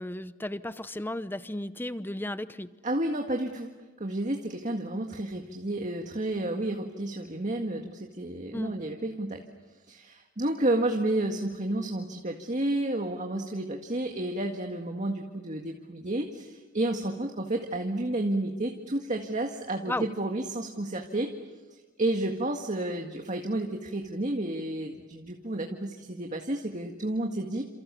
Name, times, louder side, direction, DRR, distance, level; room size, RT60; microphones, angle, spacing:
voice 1, 0.0-2.7 8.5-8.7 19.9-20.1, left 1 dB, 10° left, 13 dB, 0.8 m, -34 dB
voice 2, 2.8-3.7 4.0-9.4 9.9-21.3 21.7-27.6, right 1 dB, 40° right, 3 dB, 1.9 m, -31 dB
29.0 x 28.0 x 7.0 m, 1.2 s
head